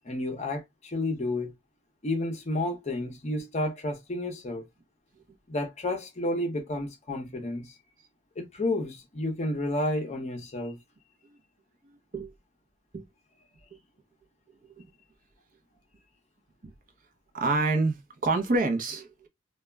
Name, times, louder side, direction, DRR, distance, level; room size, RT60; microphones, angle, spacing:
voice 1, 0.0-1.5 2.0-4.6 5.5-7.7 8.4-10.8, left 1 dB, 35° left, 0.6 m, -31 dB
voice 2, 17.3-19.3, right 3 dB, 45° right, 0.6 m, -27 dB
2.2 x 2.0 x 3.3 m
head